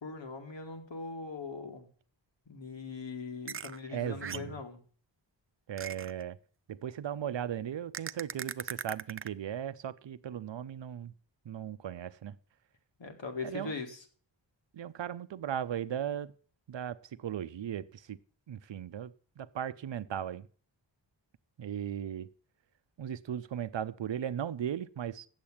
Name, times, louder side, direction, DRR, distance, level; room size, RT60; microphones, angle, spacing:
voice 1, 0.0-1.9 2.5-4.8 13.0-14.0, left 4 dB, 80° left, 2.1 m, -41 dB
sound 1, 3.5-3.8 4.2-4.6 5.8-6.2 7.9-9.3, right 6 dB, 30° right, 0.4 m, -39 dB
voice 2, 3.9-4.5 5.7-6.4 6.7-11.1 11.4-12.4 13.4-13.7 14.7-16.3 16.7-18.2 18.5-20.5 21.6-22.3 23.0-25.3, right 9 dB, 75° right, 0.7 m, -37 dB
8.7 x 7.4 x 7.2 m
wide cardioid pair, 95°, 44 cm